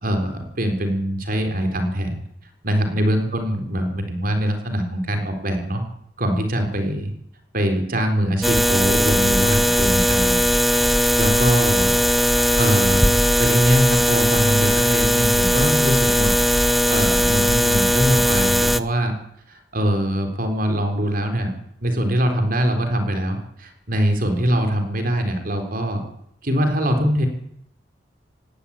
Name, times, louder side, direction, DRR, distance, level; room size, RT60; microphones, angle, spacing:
voice 1, 0.0-2.2 2.6-5.8 6.2-7.1 7.5-10.4 10.7-12.0 12.6-16.3 16.9-19.2 19.5-21.5 21.8-26.0 26.4-27.3, equal, 55° right, 6 dB, 3.8 m, -23 dB
sound 1, 8.4-18.8, equal, ahead, 0.8 m, -18 dB
18.0 x 17.5 x 10.0 m, 0.73 s
head